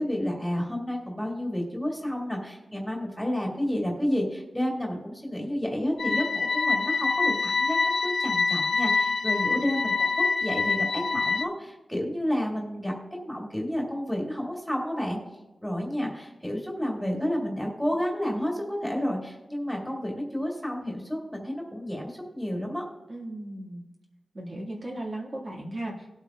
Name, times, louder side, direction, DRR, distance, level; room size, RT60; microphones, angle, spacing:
voice 1, 0.0-15.2 15.6-22.9, equal, 5° left, -2 dB, 2.3 m, -30 dB
sound 1, 6.0-11.5, left 4 dB, 60° left, 0.4 m, -25 dB
voice 2, 23.1-23.8 24.3-26.2, right 1 dB, 35° right, -2 dB, 1.9 m, -36 dB
19.0 x 8.5 x 2.4 m, 1.0 s
wide cardioid pair, 145°, 0 cm